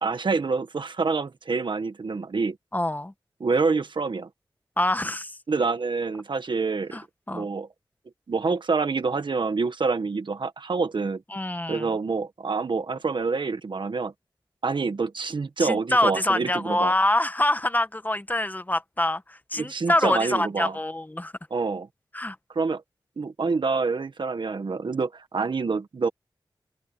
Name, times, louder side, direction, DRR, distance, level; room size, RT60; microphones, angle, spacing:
voice 1, 0.0-2.6 3.4-4.3 5.5-7.0 7.3-7.7 8.3-11.2 11.7-14.1 14.6-16.9 19.6-20.7 21.5-21.9 22.5-22.8 23.2-26.1, right 4 dB, 70° right, 1.5 m, -27 dB
voice 2, 2.7-3.1 4.8-5.4 6.9-7.5 11.3-11.9 15.6-21.3 22.1-22.4, left 1 dB, 20° left, 1.4 m, -25 dB
wide cardioid pair, 65°, 8 cm